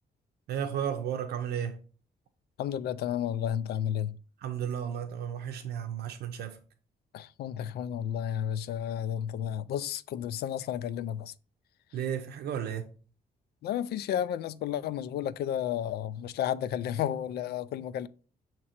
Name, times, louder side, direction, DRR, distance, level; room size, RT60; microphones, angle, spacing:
voice 1, 0.5-1.8 4.4-6.6 11.9-12.9, right 9 dB, 75° right, 0.6 m, -33 dB
voice 2, 2.6-4.2 7.1-11.3 13.6-18.1, left 10 dB, 80° left, 0.4 m, -32 dB
7.3 x 2.9 x 4.3 m
cardioid pair, 175°, 17 cm